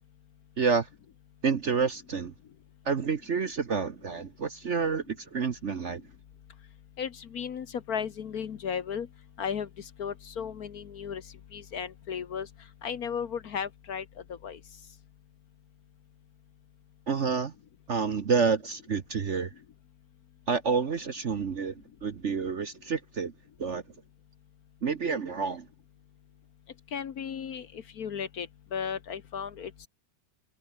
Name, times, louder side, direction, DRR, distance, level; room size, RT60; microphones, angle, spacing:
voice 1, 0.6-0.9 1.4-2.3 2.8-6.0 17.1-17.5 17.9-19.5 20.5-23.3 23.6-23.8 24.8-25.7, right 5 dB, 45° right, 1.2 m, -29 dB
voice 2, 7.0-9.1 9.4-11.2 11.5-12.5 12.8-14.6 26.9-29.9, left 7 dB, 55° left, 1.4 m, -35 dB
omnidirectional pair, 2.0 m